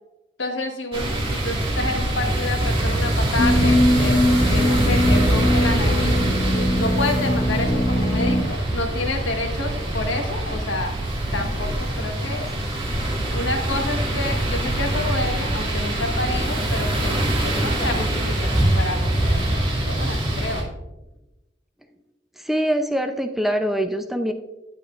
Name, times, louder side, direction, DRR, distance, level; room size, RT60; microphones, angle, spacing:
voice 1, 0.4-6.2 6.8-10.9 11.3-12.5 13.3-19.6 19.9-20.7, left 2 dB, 90° left, 4 dB, 1.3 m, -29 dB
sound 1, 0.9-20.6, right 1 dB, 30° right, 1.8 m, -23 dB
sound 2, 3.4-8.4, left 1 dB, 65° left, 1.5 m, -21 dB
voice 2, 22.4-24.3, equal, ahead, 5 dB, 0.5 m, -23 dB
9.4 x 9.1 x 2.5 m, 0.99 s
head